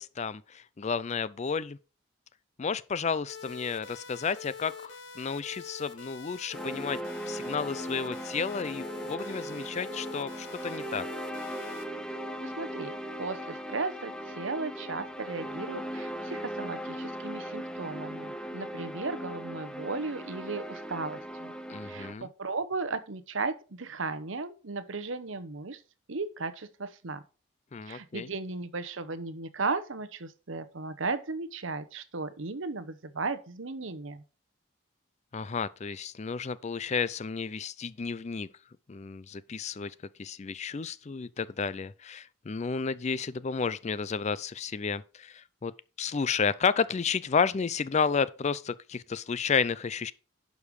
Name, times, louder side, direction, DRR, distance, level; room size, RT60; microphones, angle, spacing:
voice 1, 0.0-1.8 2.6-7.0 7.3-11.1 21.7-22.3 27.7-28.3 35.3-38.5 38.9-45.7 46.0-50.1, left 5 dB, 35° left, 0.4 m, -32 dB
sound 1, 3.3-11.8, left 5 dB, 55° left, 1.5 m, -45 dB
sound 2, 6.5-22.1, right 1 dB, 5° left, 0.7 m, -38 dB
voice 2, 12.4-21.5 21.8-25.8 26.1-27.2 27.9-34.2, right 3 dB, 70° right, 0.9 m, -36 dB
11.5 x 5.3 x 4.7 m
head